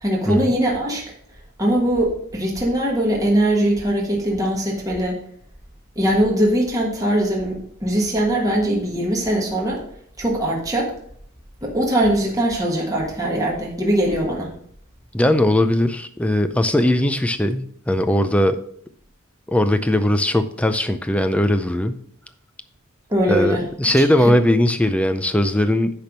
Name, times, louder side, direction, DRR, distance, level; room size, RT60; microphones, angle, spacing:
voice 1, 0.0-1.0 1.6-5.2 5.9-9.8 10.2-10.9 11.6-14.5 23.1-23.6 23.9-24.3, right 1 dB, 15° right, -2 dB, 1.5 m, -21 dB
voice 2, 15.1-18.6 19.5-22.0 23.3-25.9, left 1 dB, 5° left, 10 dB, 0.4 m, -19 dB
10.0 x 3.5 x 6.0 m, 0.65 s
head